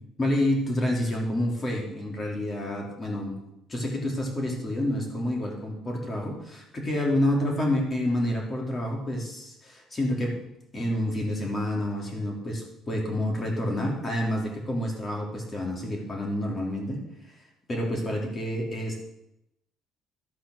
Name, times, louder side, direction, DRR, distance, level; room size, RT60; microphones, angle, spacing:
voice 1, 0.2-3.4 3.7-10.4 10.7-17.0 17.7-19.0, left 1 dB, 20° left, -1 dB, 2.8 m, -28 dB
12.0 x 5.7 x 6.2 m, 0.84 s
cardioid pair, 140°, 0 cm